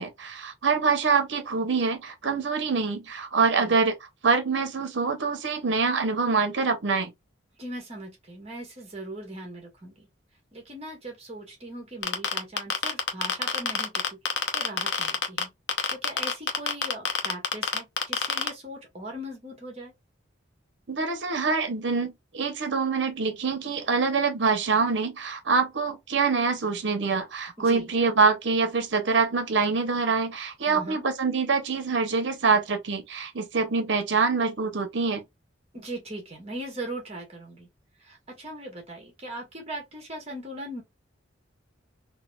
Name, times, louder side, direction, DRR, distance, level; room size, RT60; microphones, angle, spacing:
voice 1, 0.0-3.9 4.2-7.1 20.9-35.2, right 4 dB, 65° right, 0.7 m, -25 dB
voice 2, 7.6-10.1 10.5-14.2 14.5-15.5 15.9-19.9 27.6-27.9 30.6-31.0 35.7-37.7 38.0-40.8, right 1 dB, 30° right, 1.1 m, -39 dB
sound 1, 12.0-15.4 15.7-18.5, left 7 dB, 65° left, 0.7 m, -25 dB
3.9 x 2.0 x 2.3 m
head